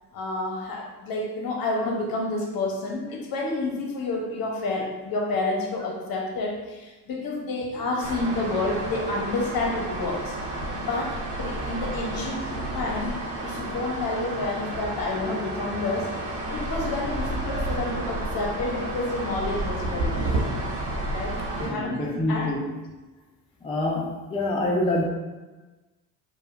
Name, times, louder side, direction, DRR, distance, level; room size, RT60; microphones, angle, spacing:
voice 1, 0.1-10.4 10.7-13.1 13.4-20.3 21.1-22.5, left 2 dB, 55° left, 0 dB, 0.8 m, -29 dB
sound 1, 8.0-21.7, right 1 dB, 85° right, 0.8 m, -31 dB
voice 2, 21.5-22.7 23.6-25.0, left 1 dB, 15° left, -1 dB, 0.4 m, -26 dB
3.2 x 2.2 x 2.4 m, 1.2 s
supercardioid pair, 75°, 42 cm